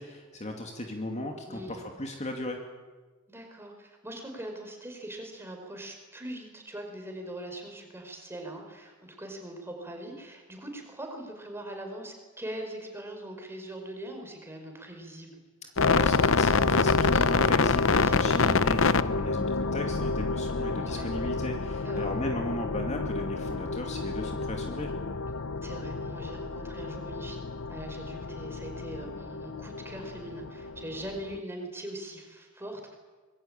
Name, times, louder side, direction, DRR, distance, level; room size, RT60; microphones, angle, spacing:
voice 1, 0.0-2.6 15.6-24.9, left 1 dB, 30° left, 3 dB, 2.6 m, -36 dB
voice 2, 1.5-1.8 3.3-15.4 18.0-18.6 20.8-21.1 21.8-22.1 25.6-32.9, right 1 dB, 10° right, 3 dB, 5.1 m, -41 dB
sound 1, 15.8-31.4, left 4 dB, 65° left, 0.8 m, -28 dB
25.5 x 22.0 x 9.0 m, 1.3 s
head